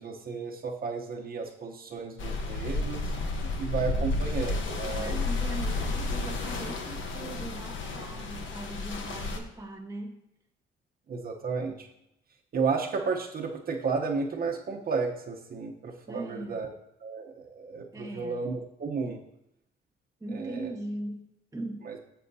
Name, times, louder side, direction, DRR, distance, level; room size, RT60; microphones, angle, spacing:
voice 1, 0.0-5.3 11.1-11.9 12.5-16.7 17.0-19.2 20.3-20.7 21.8-22.0, right 5 dB, 50° right, 0 dB, 1.0 m, -33 dB
sound 1, 2.2-9.4, left 3 dB, 75° left, 1.1 m, -32 dB
voice 2, 4.8-10.2 16.1-16.6 17.9-18.4 20.2-21.9, right 1 dB, 15° right, 4 dB, 1.3 m, -40 dB
10.0 x 7.1 x 2.8 m, 0.83 s
cardioid pair, 90°, 20 cm